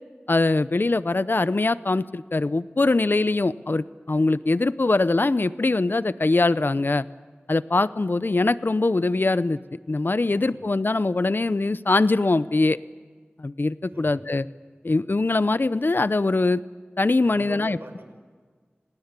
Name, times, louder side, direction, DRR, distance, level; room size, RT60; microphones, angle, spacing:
voice 1, 0.3-7.0 7.5-9.6 9.9-12.8 13.4-14.4 14.8-16.6 17.0-17.8, left 2 dB, 55° left, 15 dB, 0.7 m, -22 dB
voice 2, 10.3-10.7 13.9-14.2 17.2-18.1, right 1 dB, 70° right, 5 dB, 5.5 m, -42 dB
27.5 x 19.5 x 9.7 m, 1.5 s
wide cardioid pair, 50°, 4 cm